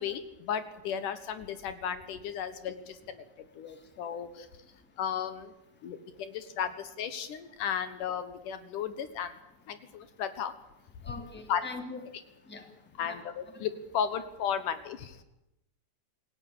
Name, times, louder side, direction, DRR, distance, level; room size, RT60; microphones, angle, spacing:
voice 1, 0.0-3.2 3.6-4.5 5.0-5.5 5.8-9.3 9.7-10.5 11.5-11.6 13.0-15.2, left 8 dB, 70° left, 11 dB, 2.7 m, -34 dB
voice 2, 11.1-12.1 12.5-12.6 13.0-13.2 13.5-13.6, left 3 dB, 5° left, 5 dB, 2.4 m, -41 dB
28.0 x 17.5 x 8.7 m, 0.87 s
omnidirectional pair, 3.9 m